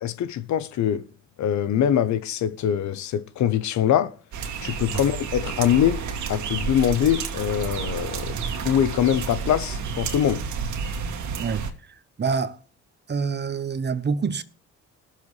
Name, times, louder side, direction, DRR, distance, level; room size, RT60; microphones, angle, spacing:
voice 1, 0.0-1.1 1.4-4.1 4.6-6.0 6.3-8.4 8.6-10.4, left 10 dB, 70° left, 0.9 m, -23 dB
sound 1, 4.3-11.7, right 6 dB, 75° right, 2.2 m, -30 dB
voice 2, 11.4-12.6 13.1-14.4, right 5 dB, 35° right, 1.1 m, -27 dB
20.5 x 7.2 x 3.2 m
cardioid pair, 90°, 30 cm